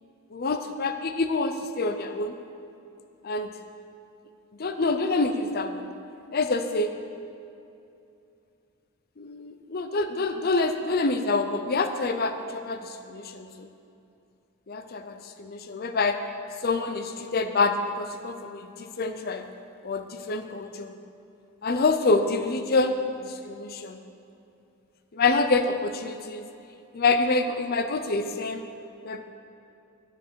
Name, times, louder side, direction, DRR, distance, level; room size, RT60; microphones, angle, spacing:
voice 1, 0.3-2.3 3.2-3.5 4.6-5.9 6.3-6.9 9.2-13.7 14.7-16.2 16.6-19.5 19.8-20.9 21.6-24.0 25.1-26.5 26.9-28.7 29.0-29.2, left 3 dB, 45° left, 8 dB, 0.6 m, -27 dB
11.0 x 6.5 x 6.8 m, 2.7 s
head